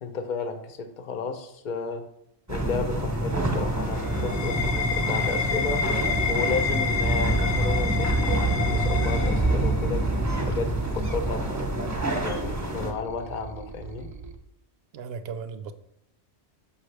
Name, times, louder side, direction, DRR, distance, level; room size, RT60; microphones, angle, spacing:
voice 1, 0.0-2.0 2.5-5.8 6.3-10.7 10.9-11.4 12.2-14.1, left 4 dB, 50° left, 7 dB, 0.7 m, -33 dB
sound 1, 2.5-12.9, right 1 dB, 15° right, 1.0 m, -26 dB
sound 2, 3.6-10.0, left 7 dB, 75° left, 0.9 m, -30 dB
voice 2, 5.7-6.2 14.9-15.7, right 6 dB, 65° right, 10 dB, 0.8 m, -36 dB
sound 3, 6.7-14.3, right 4 dB, 45° right, 0.3 m, -42 dB
6.0 x 5.6 x 3.2 m, 0.74 s
omnidirectional pair, 1.2 m